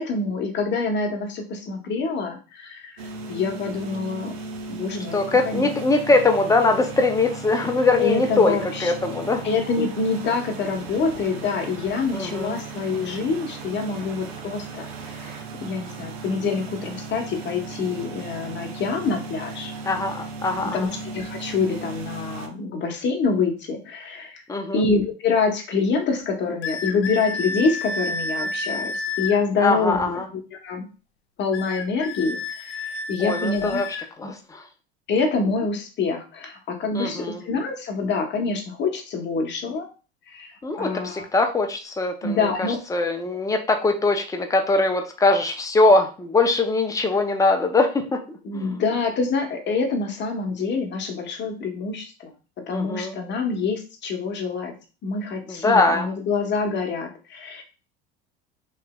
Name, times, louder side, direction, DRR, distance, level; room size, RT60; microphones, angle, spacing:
voice 1, 0.0-3.0 3.3-4.3 4.7-5.7 8.0-8.9 9.4-19.7 20.7-20.9 21.1-24.4 24.7-30.9 31.4-33.8 34.2-34.3 35.1-39.9 40.3-41.2 42.2-42.8 48.4-52.3 52.7-54.7 55.0-57.6, left 4 dB, 35° left, 4 dB, 0.9 m, -26 dB
sound 1, 3.0-22.5, right 3 dB, 70° right, 0.7 m, -36 dB
voice 2, 5.1-9.4 12.1-12.6 19.8-20.9 24.5-24.8 29.6-30.3 33.2-33.9 34.2-34.6 36.9-37.4 40.6-48.8 52.7-53.2 55.5-56.3, left 3 dB, 10° left, 4 dB, 0.5 m, -22 dB
sound 2, 26.6-29.4 31.5-34.1, left 3 dB, 85° left, 0.5 m, -30 dB
3.1 x 2.8 x 2.2 m, 0.34 s
hypercardioid pair, 80°, 32 cm